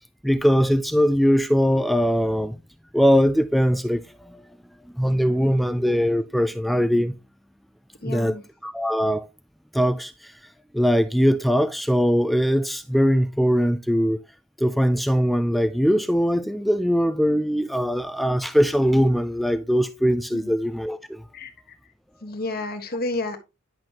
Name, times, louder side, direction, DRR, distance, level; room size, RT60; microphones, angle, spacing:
voice 1, 0.2-2.6 2.9-4.4 5.0-7.1 8.0-8.3 8.6-9.2 9.7-10.3 10.7-14.2 14.6-21.2, equal, ahead, 0.3 m, -21 dB
voice 2, 8.0-8.4 20.3-20.5 21.3-21.5 22.2-23.4, left 2 dB, 45° left, 1.4 m, -30 dB
10.5 x 6.0 x 2.9 m
head